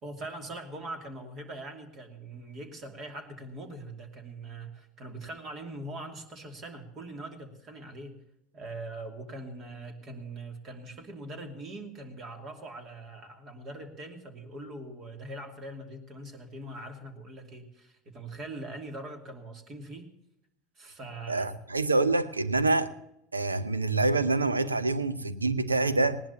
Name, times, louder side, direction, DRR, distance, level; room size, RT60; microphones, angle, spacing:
voice 1, 0.0-8.2 8.5-20.1 20.8-21.6, right 2 dB, 40° right, 2.7 m, -42 dB
voice 2, 21.3-22.9 23.3-26.2, right 2 dB, 90° right, 0.7 m, -26 dB
19.5 x 18.0 x 2.9 m
figure-of-eight pair, 75°, 0 cm